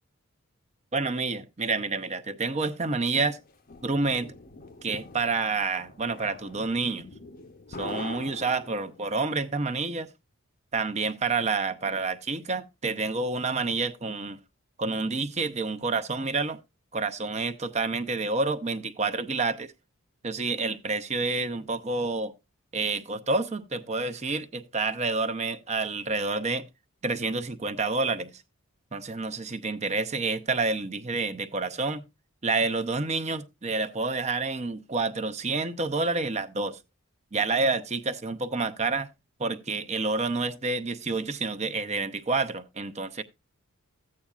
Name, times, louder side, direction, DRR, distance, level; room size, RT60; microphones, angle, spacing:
voice 1, 0.9-3.4 3.8-4.3 4.8-7.0 7.8-10.1 10.7-14.4 14.8-16.6 16.9-19.7 20.2-22.3 22.7-26.7 27.0-28.3 28.9-32.0 32.4-36.8 37.3-39.1 39.4-43.2, right 3 dB, 30° right, 0.7 m, -28 dB
sound 1, 3.2-9.1, left 3 dB, 40° left, 0.8 m, -43 dB
14.0 x 8.6 x 2.4 m
head